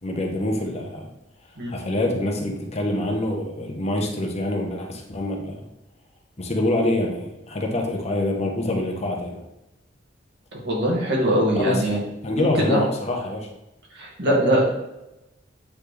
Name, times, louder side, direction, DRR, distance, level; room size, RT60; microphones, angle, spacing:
voice 1, 0.0-1.1 1.7-5.7 6.4-9.4 11.5-13.5, left 1 dB, 40° left, 1 dB, 1.0 m, -26 dB
voice 2, 10.6-12.0 12.3-12.8 13.9-14.7, equal, 70° right, -4 dB, 2.2 m, -21 dB
8.4 x 4.1 x 3.4 m, 0.92 s
head